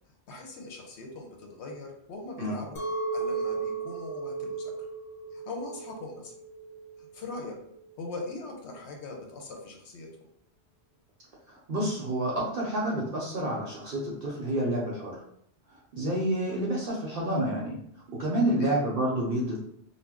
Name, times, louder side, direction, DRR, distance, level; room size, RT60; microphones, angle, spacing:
voice 1, 0.3-2.8 3.1-4.7 5.3-6.3 7.1-7.6 8.0-10.1 18.6-18.7, left 3 dB, 85° left, 1 dB, 1.0 m, -41 dB
Chink clink, 2.8-7.9, right 4 dB, 50° left, 0.4 m, -35 dB
voice 2, 11.5-15.2 15.7-17.8 18.1-19.6, right 1 dB, 60° right, -4 dB, 0.8 m, -29 dB
2.5 x 2.1 x 3.4 m, 0.71 s
omnidirectional pair, 1.1 m